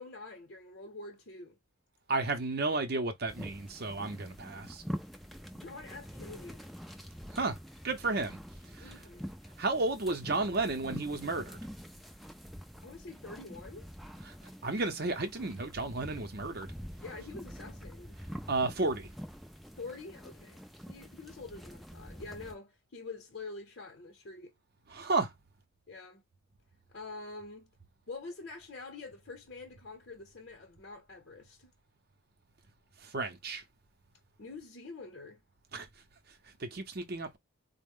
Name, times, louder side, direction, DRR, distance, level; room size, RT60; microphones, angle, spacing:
voice 1, 0.0-1.6 5.5-6.7 8.8-9.3 12.8-13.9 17.0-18.2 19.8-24.5 25.9-26.2 26.9-27.7 28.1-31.7 34.4-35.4, left 3 dB, 50° left, 0.8 m, -46 dB
voice 2, 2.1-4.8 7.3-7.6 7.8-8.4 8.8-9.0 9.6-11.6 14.3-14.4 14.6-16.7 18.5-19.1 24.9-25.3 33.0-33.6 35.7-35.9 36.6-37.4, right 3 dB, 45° right, 0.6 m, -32 dB
sound 1, 3.3-22.6, equal, ahead, 0.3 m, -46 dB
4.0 x 2.1 x 3.5 m
head